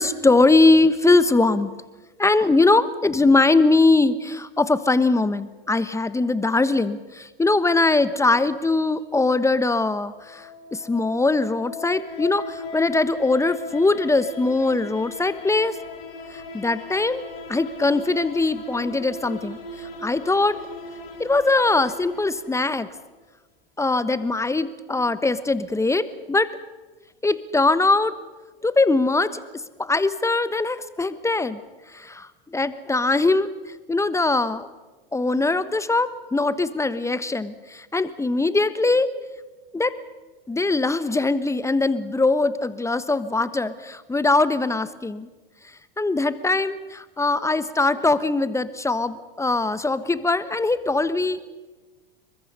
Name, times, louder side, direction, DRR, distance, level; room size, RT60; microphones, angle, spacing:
voice 1, 0.0-1.7 2.2-15.8 16.3-20.6 21.2-22.9 23.8-26.5 27.2-28.1 28.6-29.4 29.8-31.6 31.9-33.5 33.9-34.7 35.1-39.1 39.7-40.0 40.5-45.3 46.0-51.4, left 3 dB, 10° left, 14 dB, 1.1 m, -21 dB
sound 1, 10.2-23.0, left 2 dB, 75° left, 4.9 m, -38 dB
27.5 x 23.0 x 5.5 m, 1.2 s
hypercardioid pair, 90°, 30 cm